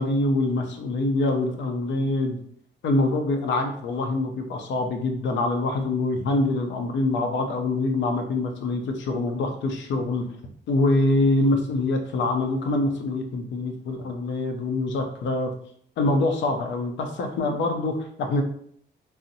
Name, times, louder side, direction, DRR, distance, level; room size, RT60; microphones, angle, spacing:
voice 1, 0.0-2.4 2.8-10.3 10.7-15.5 16.0-18.4, left 2 dB, 70° left, 4 dB, 0.6 m, -25 dB
3.9 x 2.0 x 2.7 m, 0.63 s
cardioid pair, 90°, 20 cm